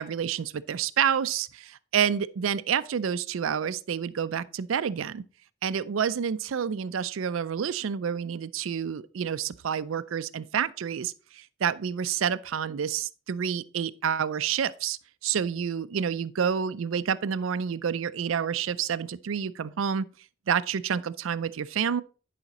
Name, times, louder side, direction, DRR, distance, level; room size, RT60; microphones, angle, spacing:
voice 1, 0.0-5.2 5.6-20.1 20.5-22.0, right 7 dB, 90° right, 0.4 m, -29 dB
10.5 x 5.0 x 4.1 m
head